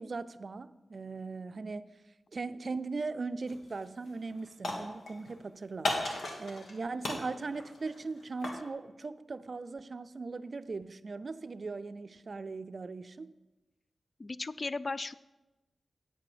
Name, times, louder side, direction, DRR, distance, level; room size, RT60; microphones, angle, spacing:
voice 1, 0.0-1.9 2.3-6.0 6.4-13.3, right 3 dB, 55° right, 13 dB, 0.5 m, -39 dB
sound 1, 3.5-3.8 4.1-5.3 5.8-6.7 7.0-8.7, left 2 dB, 85° left, 1.7 m, -36 dB
voice 2, 14.2-15.1, left 3 dB, 40° left, 17 dB, 0.3 m, -36 dB
8.7 x 8.3 x 5.1 m, 1.1 s
cardioid pair, 60°, 0 cm